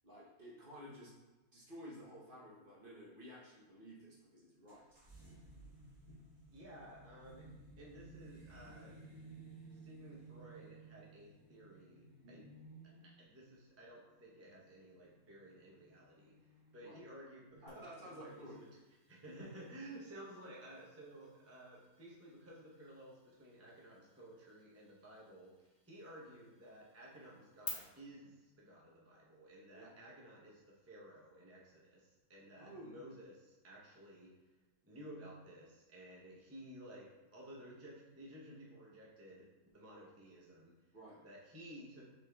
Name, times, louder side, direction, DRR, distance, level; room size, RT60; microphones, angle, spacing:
voice 1, 0.0-1.1 1.5-5.0 12.2-12.5 16.8-17.0 17.5-18.6 19.3-19.4 29.7-30.0 32.6-33.0 40.9-41.2, equal, 45° right, -5 dB, 1.0 m, -53 dB
sound 1, 4.7-16.8, right 3 dB, 80° right, 1.7 m, -57 dB
voice 2, 6.5-7.5 7.8-8.9 9.7-12.4 13.2-18.5 19.1-34.3 34.8-39.5 39.7-40.7 41.2-42.1, right 1 dB, 15° right, -5 dB, 0.6 m, -55 dB
sound 2, 17.7-27.7, left 5 dB, 70° left, 1.5 m, -57 dB
6.1 x 3.7 x 2.2 m, 1.2 s
omnidirectional pair, 1.5 m